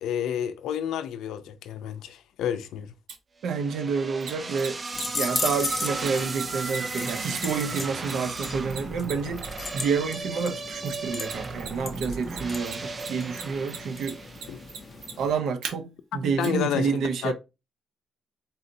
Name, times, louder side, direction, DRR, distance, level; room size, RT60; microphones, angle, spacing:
voice 1, 0.0-2.9 14.5-14.6 16.4-17.3, left 9 dB, 85° left, 0.5 m, -30 dB
Mechanisms, 3.1-3.2 4.2-10.1 10.9-11.7 11.9-15.7 16.4-16.5, right 6 dB, 80° right, 1.2 m, -38 dB
voice 2, 3.4-4.8 5.1-14.2 15.2-17.3, right 5 dB, 60° right, 0.7 m, -29 dB
sound 1, 3.5-14.8, right 3 dB, 20° right, 0.4 m, -35 dB
sound 2, 4.9-15.3, left 4 dB, 30° left, 0.6 m, -37 dB
4.1 x 4.0 x 2.7 m
cardioid pair, 175°, 0 cm